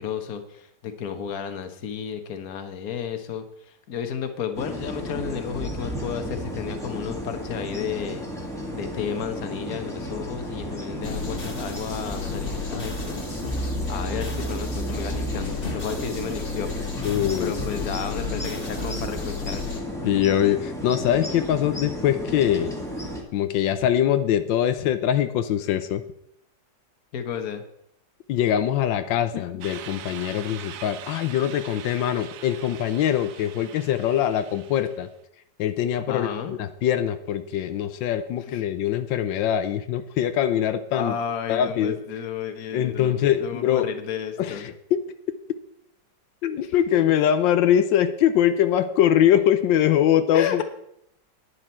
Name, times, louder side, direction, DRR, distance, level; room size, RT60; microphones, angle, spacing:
voice 1, 0.0-8.3 8.7-13.2 13.9-16.7 17.4-19.7 27.1-27.6 36.1-36.5 38.5-38.6 40.9-43.1 43.4-44.7 46.6-46.7 50.3-50.6, left 8 dB, 55° left, 8 dB, 1.5 m, -32 dB
sound 1, 4.5-23.2, equal, ahead, 1.9 m, -34 dB
sound 2, 11.0-19.8, left 2 dB, 30° left, 1.6 m, -32 dB
voice 2, 17.0-17.5 20.0-22.8 23.3-26.0 28.3-35.1 35.6-41.1 41.5-42.0 42.7-43.9 44.4-45.1 46.4-50.6, left 10 dB, 85° left, 11 dB, 1.4 m, -23 dB
sound 3, 29.6-35.1, right 10 dB, 65° right, 0.8 m, -42 dB
11.0 x 9.9 x 4.4 m, 0.73 s
omnidirectional pair, 2.0 m